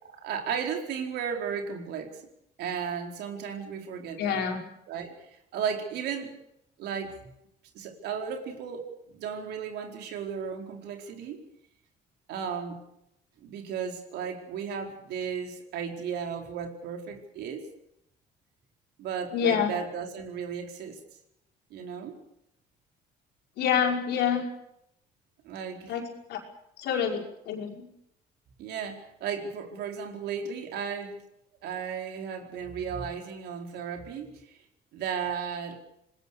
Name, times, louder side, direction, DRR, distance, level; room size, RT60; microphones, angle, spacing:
voice 1, 0.0-2.2 2.6-4.4 4.9-6.3 6.8-7.3 7.7-8.9 9.1-11.4 12.3-12.8 13.4-17.7 19.0-21.0 21.7-22.2 25.4-26.0 28.6-31.2 31.6-34.6 34.9-35.8, right 7 dB, 80° right, 3 dB, 4.6 m, -35 dB
voice 2, 4.2-4.6 19.3-19.7 23.6-24.5 25.9-26.4 26.8-27.9, left 8 dB, 80° left, 2 dB, 5.5 m, -27 dB
27.0 x 20.0 x 6.8 m, 0.80 s
cardioid pair, 110°, 17 cm